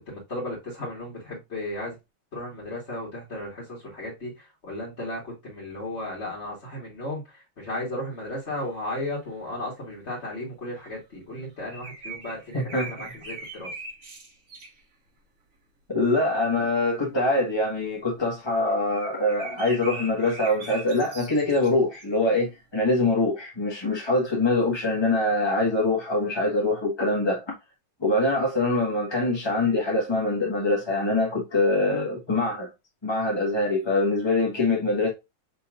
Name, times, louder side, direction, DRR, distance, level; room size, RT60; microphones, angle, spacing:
voice 1, 0.1-2.0 2.3-13.7, left 1 dB, 35° left, 1.9 m, -35 dB
sound 1, 8.6-8.8 9.3-9.5 10.2-10.3 10.7-10.9 11.4-14.8 16.8-17.4 17.9-18.0 18.7-22.0, right 3 dB, 45° right, 1.7 m, -41 dB
voice 2, 12.5-12.9 15.9-27.5 28.0-32.7 33.0-35.1, left 2 dB, 15° left, 1.0 m, -24 dB
5.4 x 4.2 x 2.3 m
omnidirectional pair, 2.2 m